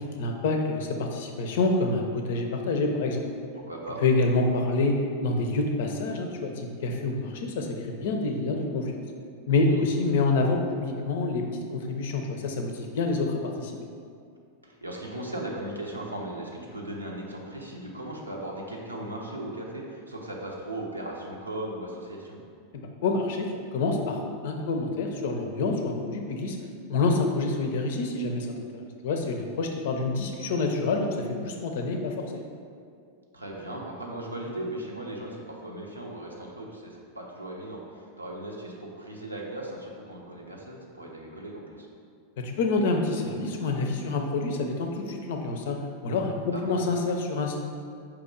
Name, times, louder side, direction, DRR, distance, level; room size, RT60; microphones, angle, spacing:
voice 1, 0.0-3.2 4.0-8.9 9.5-11.4 11.7-13.7 22.7-26.6 26.9-28.5 28.7-32.4 42.4-47.6, left 3 dB, 55° left, 3 dB, 0.5 m, -27 dB
voice 2, 3.7-4.0 9.6-9.8 14.6-22.5 33.3-41.9 46.5-46.9, right 1 dB, 85° right, -1 dB, 0.6 m, -37 dB
4.9 x 2.9 x 3.7 m, 2.2 s
figure-of-eight pair, 90°, 0 cm